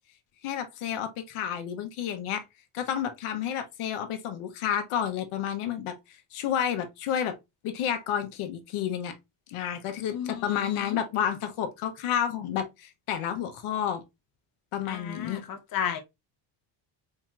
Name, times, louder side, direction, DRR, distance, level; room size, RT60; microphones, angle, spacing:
voice 1, 0.4-2.4 2.7-7.3 7.6-9.1 9.5-14.0 14.7-15.4, left 9 dB, 85° left, 0.9 m, -30 dB
voice 2, 10.1-11.0 14.9-16.0, left 8 dB, 45° left, 0.7 m, -34 dB
4.3 x 2.9 x 2.3 m
cardioid pair, 150°, 48 cm